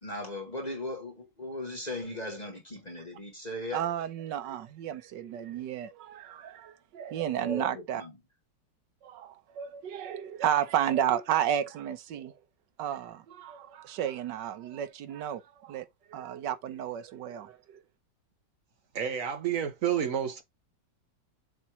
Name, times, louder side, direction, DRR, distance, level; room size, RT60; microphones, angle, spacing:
voice 1, 0.0-3.8 7.4-7.7 8.0-8.1, left 1 dB, 25° left, 1.4 m, -37 dB
voice 2, 3.7-8.0 9.0-12.3 12.8-17.6, right 10 dB, 75° right, 1.4 m, -32 dB
voice 3, 18.9-20.4, right 9 dB, 60° right, 0.9 m, -29 dB
7.4 x 2.9 x 4.7 m
omnidirectional pair, 2.0 m